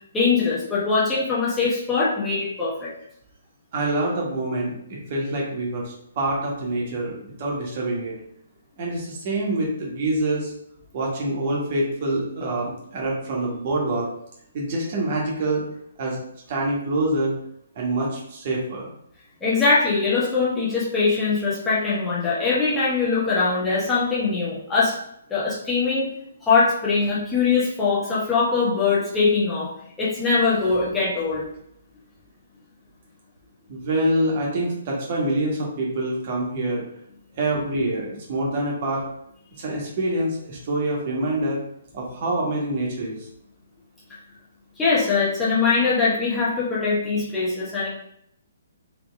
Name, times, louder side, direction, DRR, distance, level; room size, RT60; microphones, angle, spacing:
voice 1, 0.1-2.9 19.4-25.0 25.3-26.1 26.4-29.7 30.0-31.4 44.8-47.9, left 4 dB, 10° left, -8 dB, 1.1 m, -22 dB
voice 2, 3.7-8.1 8.8-10.5 10.9-14.1 14.5-15.7 16.0-16.2 16.5-17.3 17.7-18.9 33.7-36.8 37.4-39.0 39.6-41.6 41.9-43.3, right 1 dB, 40° right, -3 dB, 1.5 m, -26 dB
3.7 x 3.3 x 3.6 m, 0.72 s
figure-of-eight pair, 130°, 0 cm